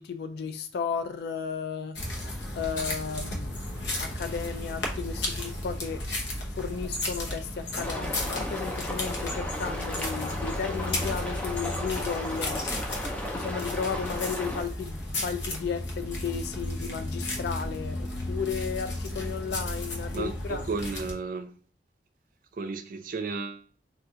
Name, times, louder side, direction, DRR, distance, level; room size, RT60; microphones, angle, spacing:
voice 1, 0.0-2.0 2.5-6.0 6.5-12.7 13.3-20.7, left 6 dB, 65° left, 0.3 m, -34 dB
sound 1, 1.9-21.1, left 1 dB, 80° left, 0.8 m, -34 dB
sound 2, 3.6-6.3 7.3-7.5 8.1-9.1 10.1-11.1 11.6-11.8 12.1-14.2, left 2 dB, 45° left, 1.0 m, -50 dB
sound 3, 7.8-14.6, left 1 dB, 10° left, 0.5 m, -35 dB
voice 2, 20.1-21.6 22.5-23.6, right 4 dB, 50° right, 0.4 m, -33 dB
2.7 x 2.4 x 3.6 m
head